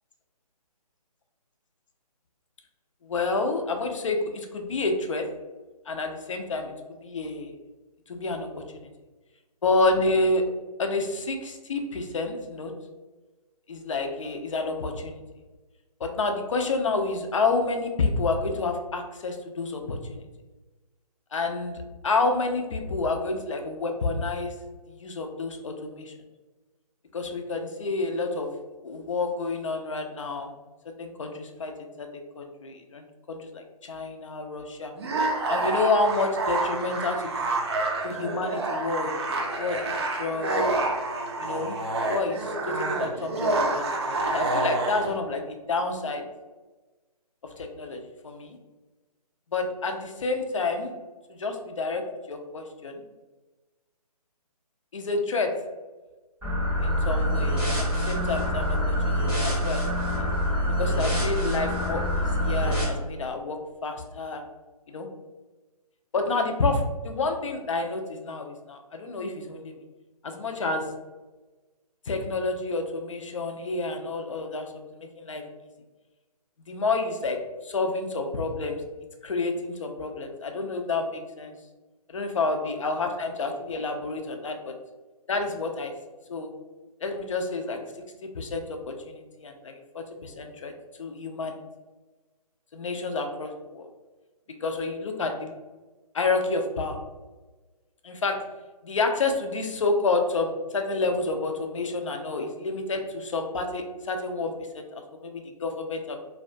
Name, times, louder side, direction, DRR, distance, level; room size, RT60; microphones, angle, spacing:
voice 1, 3.0-5.2 5.9-7.5 8.1-8.5 8.8-8.9 9.6-10.4 10.8-12.7 13.7-15.2 16.0-20.2 21.3-21.7 22.0-24.5 24.9-26.1 27.1-28.5 28.8-30.5 31.0-31.7 32.0-32.1 32.4-34.9 35.5-37.5 38.0-39.3 39.5-40.7 41.4-41.8 42.1-43.9 44.3-46.2 47.6-48.6 49.5-50.9 51.3-52.0 52.3-53.0 54.9-55.5 56.8-59.8 60.2-60.3 60.8-63.6 63.8-64.4 64.9-65.1 66.1-69.7 70.2-70.8 72.1-74.7 74.9-75.4 76.7-77.4 77.6-78.8 79.2-81.6 82.1-84.7 85.3-85.9 86.3-86.5 87.0-87.8 88.3-90.7 91.0-91.6 92.7-93.9 94.6-95.5 96.1-97.0 98.0-98.4 98.8-106.2, left 3 dB, 50° left, 4 dB, 0.4 m, -29 dB
sound 1, 35.0-45.1, right 2 dB, 45° right, 0.4 m, -28 dB
sound 2, 56.4-62.8, equal, 5° right, 0.7 m, -25 dB
2.3 x 2.2 x 2.5 m, 1.2 s
figure-of-eight pair, 145°, 20 cm